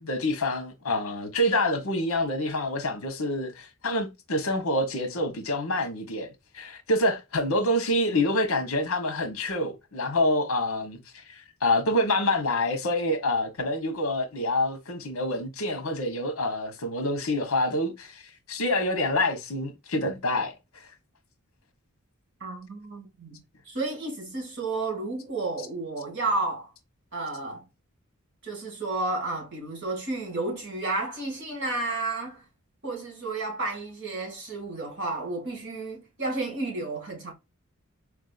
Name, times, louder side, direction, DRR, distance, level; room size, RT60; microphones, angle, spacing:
voice 1, 0.0-18.2 18.5-20.5, left 1 dB, 75° left, 1.0 m, -27 dB
voice 2, 22.4-23.4 23.7-26.7 27.1-27.6 28.4-32.4 32.8-37.3, right 2 dB, 55° right, 2.1 m, -32 dB
4.7 x 2.6 x 2.4 m
head